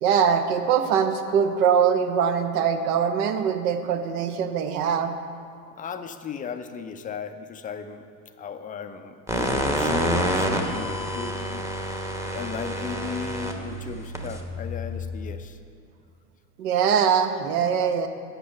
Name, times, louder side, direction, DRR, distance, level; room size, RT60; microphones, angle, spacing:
voice 1, 0.0-5.1 16.6-18.1, right 7 dB, 65° right, 7 dB, 1.0 m, -22 dB
voice 2, 5.8-8.1 8.4-12.0 12.3-15.6, left 6 dB, 15° left, 8 dB, 0.5 m, -36 dB
sound 1, 9.3-15.3, equal, 5° right, 1.0 m, -28 dB
8.1 x 6.1 x 7.7 m, 2.4 s
hypercardioid pair, 85°, 50 cm